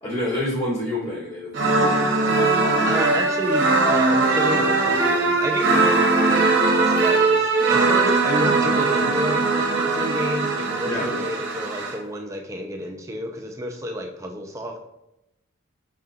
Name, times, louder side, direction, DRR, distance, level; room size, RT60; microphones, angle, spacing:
voice 1, 0.0-2.2 5.8-6.0 10.8-11.2, left 1 dB, 25° left, -5 dB, 0.8 m, -28 dB
sound 1, 1.5-12.0, right 3 dB, 55° right, 0.7 m, -20 dB
voice 2, 2.9-14.8, equal, 15° right, 2 dB, 0.4 m, -30 dB
5.5 x 2.7 x 2.4 m, 0.89 s
head